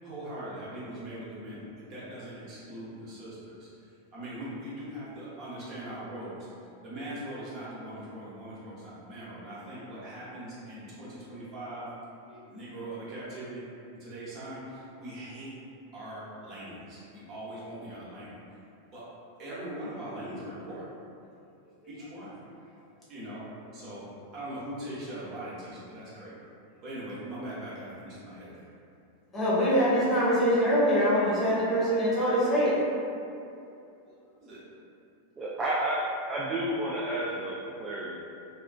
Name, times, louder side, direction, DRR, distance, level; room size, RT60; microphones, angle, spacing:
voice 1, 0.0-3.9 4.1-6.5 6.8-11.9 12.5-13.6 13.9-15.5 15.9-18.3 18.9-19.0 19.4-20.9 21.9-22.3 23.1-23.5 23.7-26.4 26.8-28.7 34.1-34.2 34.4-34.6, right 1 dB, 40° right, -9 dB, 0.9 m, -41 dB
voice 2, 29.3-32.7, equal, 20° left, -10 dB, 1.0 m, -24 dB
voice 3, 35.4-36.0 36.3-38.1, right 1 dB, 20° right, -6 dB, 0.3 m, -31 dB
2.9 x 2.4 x 2.2 m, 2.6 s
figure-of-eight pair, 90°, 0 cm